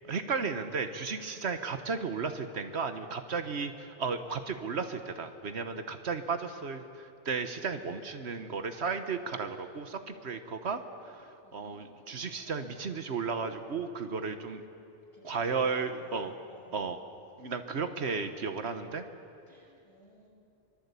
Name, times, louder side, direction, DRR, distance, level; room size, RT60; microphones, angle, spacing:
voice 1, 0.0-14.6 15.2-16.3 16.7-17.0 17.4-19.0, right 5 dB, 80° right, 8 dB, 1.5 m, -34 dB
voice 2, 11.4-12.9 15.1-16.8 17.8-18.9 19.5-20.3, left 1 dB, 30° left, -5 dB, 7.7 m, -58 dB
24.0 x 22.5 x 8.3 m, 2.7 s
omnidirectional pair, 1.1 m